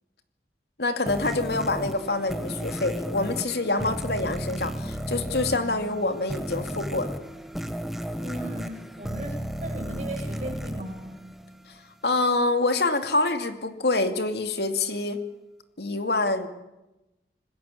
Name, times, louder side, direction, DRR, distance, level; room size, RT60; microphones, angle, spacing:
voice 1, 0.8-7.1 12.0-15.2 15.8-16.5, left 2 dB, 70° left, 7 dB, 2.6 m, -26 dB
sound 1, 1.1-11.8, equal, ahead, 1.4 m, -34 dB
voice 2, 8.2-11.1, right 1 dB, 40° right, 2 dB, 7.7 m, -37 dB
27.5 x 20.5 x 8.6 m, 0.97 s
head